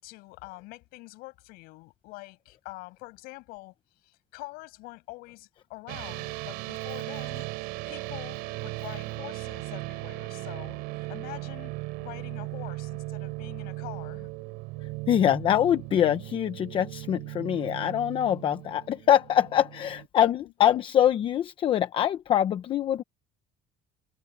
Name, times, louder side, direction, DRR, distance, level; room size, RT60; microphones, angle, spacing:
voice 1, 0.0-3.7 4.0-7.5 7.9-14.3 19.9-20.5, left 22 dB, 70° left, 7.8 m, -45 dB
sound 1, 5.9-20.1, right 24 dB, 75° right, 6.8 m, -37 dB
voice 2, 14.8-23.0, left 10 dB, 30° left, 0.8 m, -24 dB
cardioid pair, 175°, 16 cm